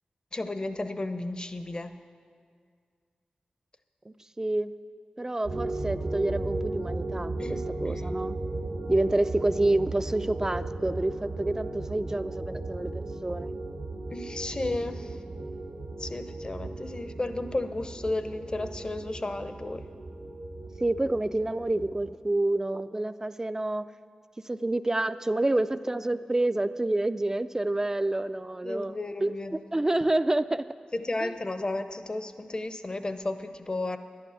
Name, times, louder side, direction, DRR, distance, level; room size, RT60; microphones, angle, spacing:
voice 1, 0.3-1.9 7.4-8.1 14.1-15.1 16.0-19.8 28.6-29.6 30.9-34.0, left 2 dB, 35° left, 9 dB, 0.7 m, -33 dB
voice 2, 4.1-4.7 5.2-7.4 7.8-8.4 8.9-13.5 20.8-23.9 24.5-29.4 29.7-30.6 31.2-31.3, right 2 dB, 20° right, 13 dB, 0.4 m, -28 dB
sound 1, 5.4-22.1, right 2 dB, 85° right, 2.0 m, -36 dB
11.5 x 11.0 x 7.0 m, 2.1 s
wide cardioid pair, 85°, 3 cm